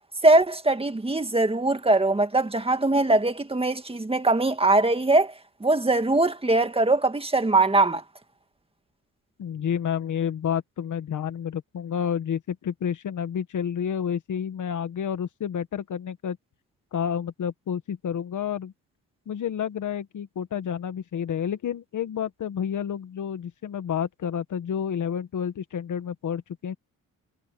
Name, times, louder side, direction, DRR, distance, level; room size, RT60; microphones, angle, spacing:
voice 1, 0.2-5.3 5.6-8.0, right 2 dB, 15° right, 2.0 m, -21 dB
voice 2, 9.4-16.4 16.9-18.7 19.3-26.7, left 8 dB, 60° left, 1.6 m, -30 dB
cardioid pair, 100°, 34 cm